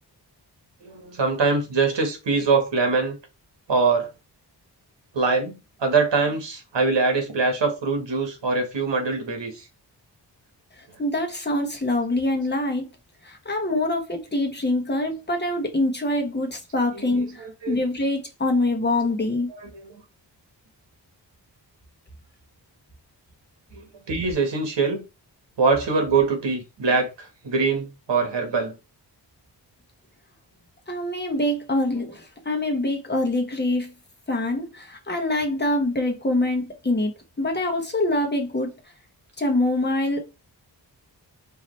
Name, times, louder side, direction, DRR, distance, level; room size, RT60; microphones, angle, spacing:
voice 1, 0.8-3.2 3.7-4.1 5.1-9.6 16.9-17.8 19.5-19.9 23.7-25.0 25.6-28.8 31.9-32.0, right 4 dB, 80° right, 1.4 m, -23 dB
voice 2, 11.0-12.9 13.2-19.5 30.9-33.9 34.3-37.1 37.4-38.7 39.4-40.2, left 1 dB, 25° left, 1.0 m, -25 dB
4.8 x 2.7 x 3.2 m
wide cardioid pair, 125°, 43 cm